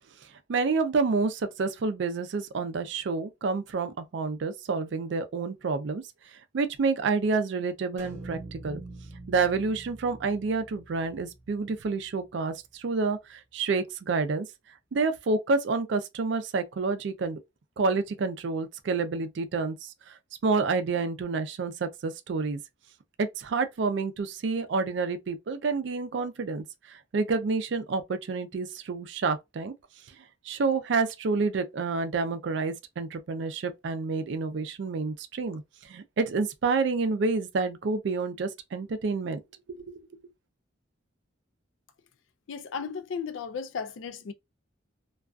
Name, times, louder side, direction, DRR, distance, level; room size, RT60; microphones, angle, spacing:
voice 1, 0.5-6.0 6.5-8.8 9.3-14.5 14.9-17.4 17.8-19.9 20.4-22.6 23.2-29.7 30.5-39.4 39.7-39.9, right 4 dB, 65° right, 0.4 m, -29 dB
sound 1, 8.0-12.2, right 2 dB, 35° right, 0.8 m, -45 dB
voice 2, 42.5-44.3, left 6 dB, 80° left, 0.4 m, -35 dB
2.4 x 2.3 x 2.3 m
head